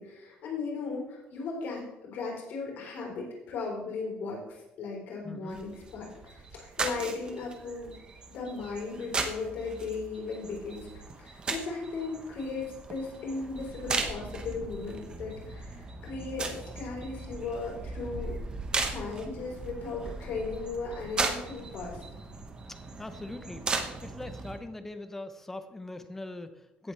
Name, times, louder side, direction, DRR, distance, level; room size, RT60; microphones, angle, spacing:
voice 1, 0.0-8.0 8.3-10.9 11.2-18.4 18.9-22.0, left 4 dB, 60° left, -2 dB, 3.9 m, -37 dB
voice 2, 5.2-5.6 22.7-23.7 24.0-26.9, left 2 dB, 10° left, 9 dB, 0.7 m, -41 dB
sound 1, 5.5-24.6, right 3 dB, 25° right, 1.0 m, -37 dB
16.5 x 7.7 x 3.3 m, 0.97 s
cardioid pair, 170°, 4 cm